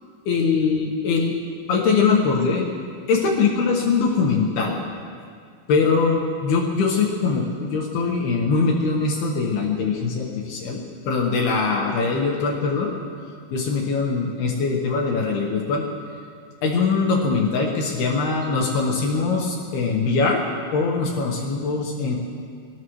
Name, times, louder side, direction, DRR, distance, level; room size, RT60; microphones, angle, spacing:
voice 1, 0.3-1.4 1.7-2.7 3.1-4.8 5.7-12.9 13.5-15.8 16.6-20.4 20.7-22.2, left 4 dB, 70° left, -1 dB, 2.9 m, -22 dB
23.5 x 19.0 x 3.2 m, 2.2 s
omnidirectional pair, 5.4 m